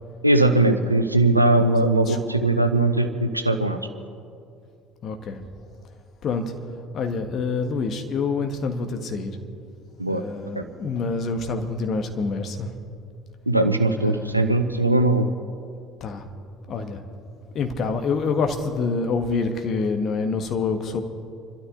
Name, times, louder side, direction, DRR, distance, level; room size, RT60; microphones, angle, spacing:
voice 1, 0.2-3.8 10.0-10.2 10.6-10.7 13.5-15.3, right 2 dB, 90° right, 7 dB, 0.7 m, -20 dB
voice 2, 1.8-2.4 5.0-5.4 6.2-9.4 10.1-12.8 14.0-14.6 16.0-16.3 16.7-17.0 17.5-21.0, left 4 dB, 45° left, 6 dB, 1.5 m, -27 dB
27.5 x 12.5 x 3.9 m, 2.5 s
figure-of-eight pair, 55°, 0 cm